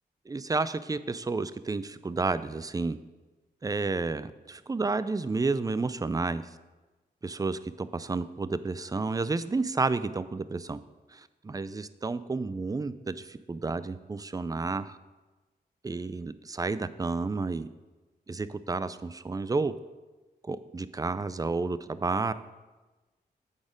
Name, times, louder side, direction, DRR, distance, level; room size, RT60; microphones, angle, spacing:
voice 1, 0.3-3.0 3.6-6.5 7.2-10.8 11.1-15.0 15.8-17.7 18.3-19.7 20.4-22.3, right 3 dB, 20° right, 14 dB, 0.4 m, -31 dB
8.6 x 4.2 x 5.0 m, 1.2 s
cardioid pair, 55°, 17 cm